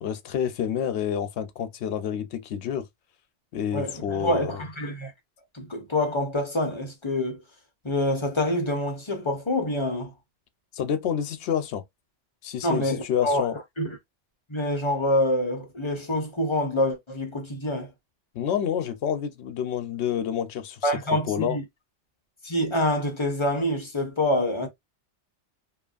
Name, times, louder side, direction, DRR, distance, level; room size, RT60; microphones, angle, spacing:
voice 1, 0.0-2.8 3.5-4.6 10.7-11.8 12.4-13.6 18.3-20.9 21.3-21.6, left 8 dB, 70° left, 0.9 m, -28 dB
voice 2, 3.7-5.1 5.5-7.4 7.8-10.1 12.6-14.0 14.5-17.9 20.8-21.6 22.4-24.7, left 1 dB, 30° left, 0.7 m, -26 dB
2.8 x 2.5 x 2.3 m
omnidirectional pair, 1.2 m